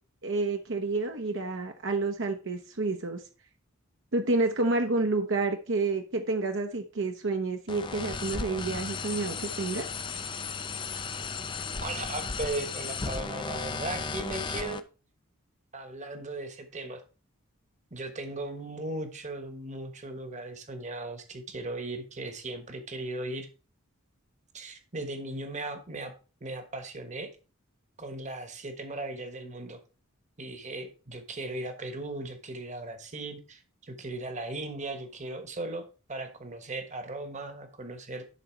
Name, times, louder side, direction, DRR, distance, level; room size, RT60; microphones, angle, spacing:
voice 1, 0.2-3.2 4.1-9.9, right 3 dB, 60° right, 4 dB, 0.8 m, -29 dB
sound 1, 7.7-14.8, left 4 dB, 20° left, 0.5 m, -35 dB
voice 2, 11.8-14.8 15.7-17.0 17.9-23.5 24.5-26.1 26.4-27.3 28.0-29.8 30.4-38.2, right 2 dB, 35° right, 8 dB, 1.2 m, -37 dB
11.0 x 4.1 x 4.5 m, 0.35 s
head